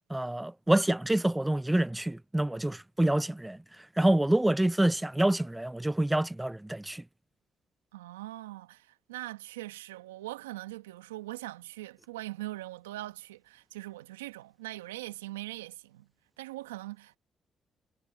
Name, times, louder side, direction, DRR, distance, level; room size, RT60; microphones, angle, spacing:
voice 1, 0.1-3.6 4.0-7.0, right 1 dB, 10° right, 0.5 m, -27 dB
voice 2, 7.9-16.1 16.4-17.2, right 17 dB, 90° right, 1.7 m, -41 dB
hypercardioid pair, 45°, 0 cm